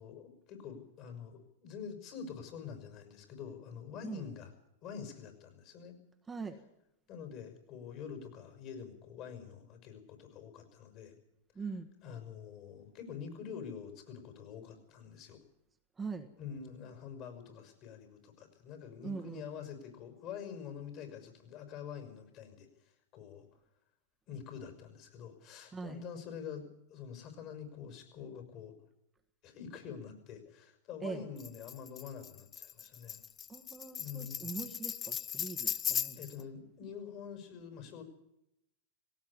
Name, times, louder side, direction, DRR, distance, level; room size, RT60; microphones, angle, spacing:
voice 1, 0.0-4.5 4.8-5.9 7.1-11.1 12.0-15.4 16.4-23.5 24.3-28.8 29.4-33.2 34.0-34.5 35.6-35.8 36.2-38.0, left 7 dB, 45° left, 6 dB, 5.9 m, -46 dB
voice 2, 6.3-6.6 11.5-11.9 16.0-16.3 19.0-19.5 25.7-26.0 31.0-31.3 33.5-36.2, right 4 dB, 15° right, 5 dB, 1.6 m, -42 dB
Tambourine, 31.4-36.4, left 8 dB, 25° left, 0.7 m, -38 dB
17.5 x 17.5 x 8.6 m, 0.84 s
hypercardioid pair, 110°, 0 cm